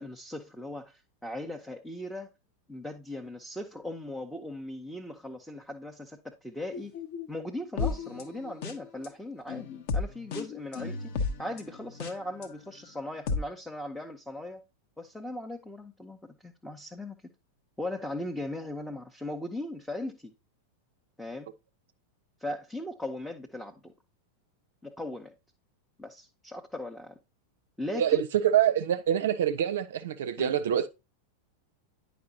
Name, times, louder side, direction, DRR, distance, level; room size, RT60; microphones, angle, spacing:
voice 1, 0.0-2.3 2.7-6.9 7.3-14.6 15.0-17.2 17.8-20.3 21.2-21.5 22.4-23.9 24.8-25.3 26.0-27.2 27.8-28.2 30.4-30.5, left 1 dB, 5° left, 0.8 m, -38 dB
sound 1, 6.7-9.1 9.5-12.5 13.0-13.4, left 5 dB, 50° left, 1.1 m, -33 dB
voice 2, 27.9-30.9, right 10 dB, 60° right, 0.5 m, -25 dB
9.6 x 5.3 x 2.8 m
figure-of-eight pair, 90°, 0 cm